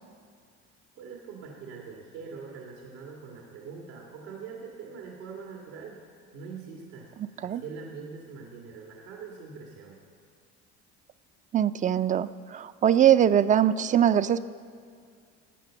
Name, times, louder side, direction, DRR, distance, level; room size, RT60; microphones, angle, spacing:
voice 1, 0.9-6.0 6.3-7.1 7.4-10.0, right 5 dB, 90° right, -1 dB, 1.9 m, -43 dB
voice 2, 11.5-14.4, right 10 dB, 25° right, 14 dB, 0.3 m, -22 dB
13.0 x 8.9 x 7.2 m, 2.2 s
supercardioid pair, 100°, 34 cm